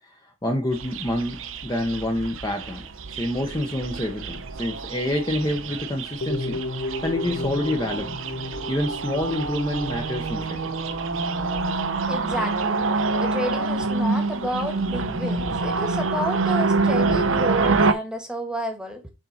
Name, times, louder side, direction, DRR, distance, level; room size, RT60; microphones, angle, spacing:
voice 1, 0.2-2.8 3.1-8.2 8.7-10.7, left 1 dB, 20° left, 1.0 m, -27 dB
sound 1, 0.7-17.9, right 3 dB, 70° right, 0.7 m, -26 dB
sound 2, 6.2-11.6 11.9-12.2, left 2 dB, 60° left, 0.7 m, -34 dB
voice 2, 12.1-12.9 13.2-19.1, equal, 5° right, 1.5 m, -30 dB
6.6 x 4.5 x 4.2 m
head